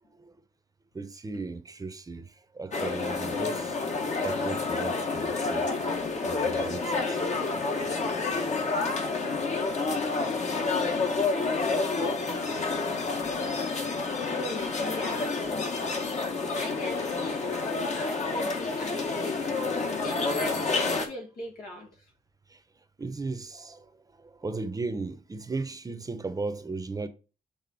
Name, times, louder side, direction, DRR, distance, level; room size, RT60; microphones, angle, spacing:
voice 1, 0.9-3.8 4.2-5.7 6.2-7.2 12.9-13.0 22.5-22.6 23.0-27.1, right 3 dB, 25° right, 0.7 m, -36 dB
sound 1, 2.7-21.1, left 3 dB, 55° left, 1.4 m, -29 dB
voice 2, 14.3-15.7 16.5-22.1, left 1 dB, 85° left, 1.9 m, -40 dB
7.0 x 3.6 x 4.1 m
cardioid pair, 85°, 15 cm